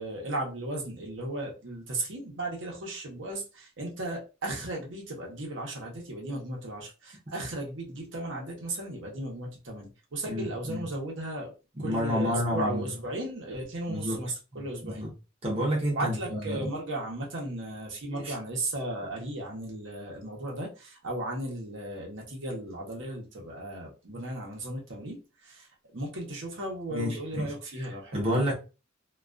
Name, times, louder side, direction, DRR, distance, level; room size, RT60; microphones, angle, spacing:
voice 1, 0.0-11.5 11.8-15.1 15.9-28.2, right 1 dB, 65° right, 0.8 m, -36 dB
voice 2, 10.3-10.8 11.8-12.9 13.9-14.2 14.5-15.1 15.4-16.7 18.1-18.3 26.9-27.5 28.1-28.5, equal, 30° right, 0.7 m, -30 dB
2.3 x 2.2 x 2.4 m
head